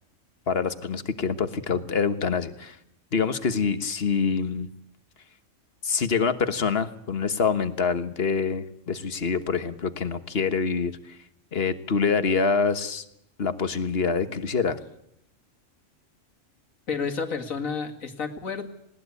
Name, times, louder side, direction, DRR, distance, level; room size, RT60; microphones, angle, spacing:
voice 1, 0.5-2.8 3.1-4.7 5.8-11.2 11.5-13.0 13.4-14.8, left 5 dB, 50° left, 11 dB, 1.5 m, -26 dB
voice 2, 16.9-18.7, left 5 dB, 85° left, 5 dB, 2.5 m, -30 dB
20.5 x 18.5 x 8.4 m, 0.76 s
omnidirectional pair, 1.4 m